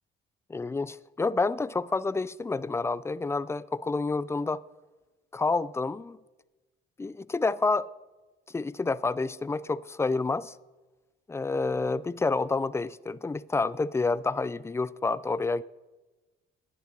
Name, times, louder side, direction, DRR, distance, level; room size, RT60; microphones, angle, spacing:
voice 1, 0.5-4.6 5.3-6.2 7.0-7.9 8.5-10.6 11.3-15.6, left 3 dB, 15° left, 0.3 m, -29 dB
10.0 x 9.8 x 6.4 m
cardioid pair, 90°, 20 cm